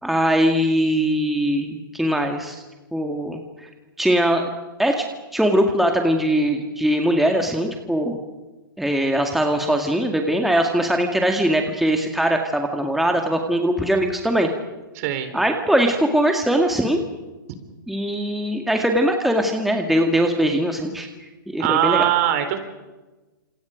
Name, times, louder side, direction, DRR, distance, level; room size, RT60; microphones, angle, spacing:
voice 1, 0.0-2.6 2.9-3.7 4.0-4.5 4.8-5.0 5.3-8.2 8.8-14.5 15.3-17.0 17.9-21.1 21.5-22.1, right 1 dB, ahead, 3 dB, 1.9 m, -21 dB
voice 2, 14.9-15.3 21.6-22.6, right 11 dB, 45° right, 9 dB, 4.0 m, -21 dB
29.0 x 27.0 x 5.2 m, 1.2 s
hypercardioid pair, 130°, 11 cm